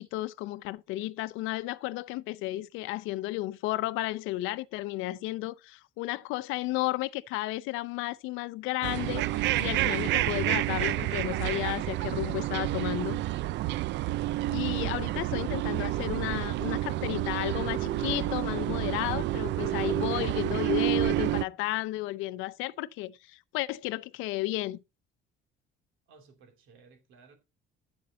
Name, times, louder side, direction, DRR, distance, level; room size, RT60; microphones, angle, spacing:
voice 1, 0.0-13.2 14.5-24.8, left 18 dB, 90° left, 0.6 m, -33 dB
sound 1, 8.8-21.4, right 15 dB, 65° right, 0.4 m, -29 dB
voice 2, 14.6-15.0 26.1-27.4, right 5 dB, 80° right, 2.9 m, -57 dB
Bass guitar, 17.8-22.2, left 4 dB, 20° left, 1.1 m, -51 dB
8.8 x 7.2 x 3.9 m
cardioid pair, 120°, 20 cm